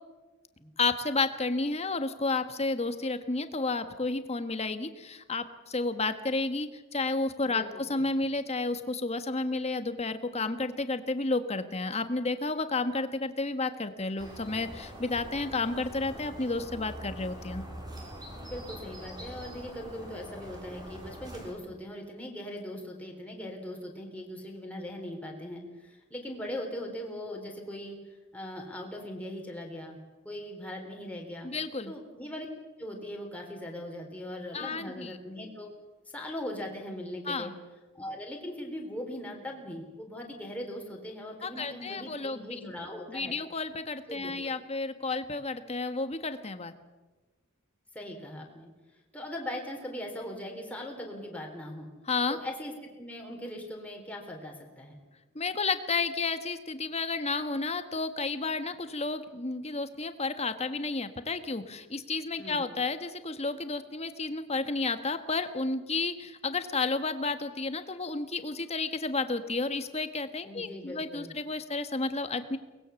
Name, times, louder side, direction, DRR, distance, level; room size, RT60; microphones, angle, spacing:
voice 1, 0.8-17.6 31.4-31.9 34.5-35.2 37.2-37.5 41.4-42.7 43.1-46.7 52.1-52.4 55.3-72.6, left 3 dB, 30° left, 9 dB, 1.4 m, -31 dB
sound 1, 14.2-21.5, equal, 20° right, 4.6 m, -44 dB
voice 2, 18.4-30.0 30.2-31.5 31.9-32.5 32.8-35.7 36.1-37.5 37.9-43.4 44.1-44.6 47.9-48.7 49.1-51.9 52.3-55.0 62.4-62.7 70.4-71.3, left 1 dB, 5° left, 0 dB, 3.9 m, -40 dB
23.5 x 20.0 x 7.1 m, 1.2 s
head